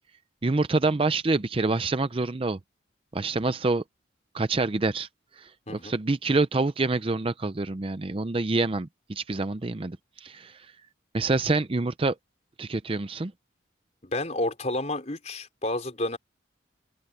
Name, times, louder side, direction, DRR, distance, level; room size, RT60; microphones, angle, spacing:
voice 1, 0.4-2.6 3.1-3.8 4.3-5.1 5.4-10.7 11.1-12.2 12.6-13.3, right 3 dB, 30° right, 0.5 m, -26 dB
voice 2, 14.0-16.2, left 1 dB, 35° left, 4.6 m, -30 dB
open air
head